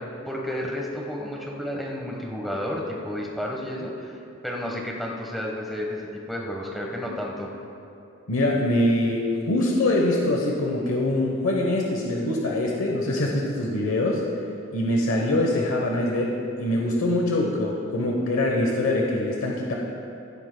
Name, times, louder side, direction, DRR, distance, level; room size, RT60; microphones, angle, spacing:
voice 1, 0.0-4.2 4.4-7.5, left 1 dB, ahead, -2 dB, 1.1 m, -31 dB
voice 2, 8.3-14.2 14.7-19.8, left 1 dB, 85° left, -1 dB, 1.0 m, -24 dB
16.0 x 12.0 x 2.2 m, 2.7 s
head